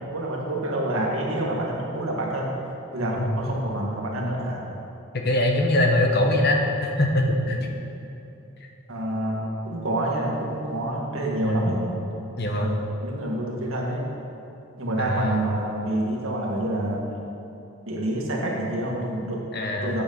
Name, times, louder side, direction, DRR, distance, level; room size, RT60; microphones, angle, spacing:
voice 1, 0.0-2.5 2.9-4.6 8.9-11.8 12.5-14.0 14.8-17.2 17.9-19.4 19.8-20.0, right 1 dB, 80° right, -2 dB, 1.7 m, -27 dB
voice 2, 5.1-7.7 11.4-11.7 12.4-12.7 15.0-15.4 19.5-20.0, left 1 dB, 50° left, 2 dB, 0.9 m, -23 dB
8.8 x 6.8 x 5.5 m, 2.9 s
head